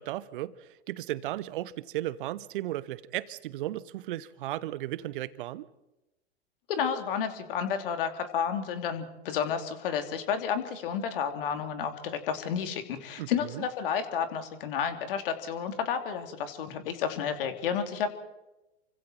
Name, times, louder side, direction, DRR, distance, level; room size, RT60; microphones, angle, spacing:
voice 1, 0.0-5.7 13.2-13.7, right 14 dB, 50° right, 1.2 m, -35 dB
voice 2, 6.7-18.1, left 7 dB, 55° left, 3.2 m, -31 dB
29.0 x 25.0 x 4.5 m
figure-of-eight pair, 100°, 34 cm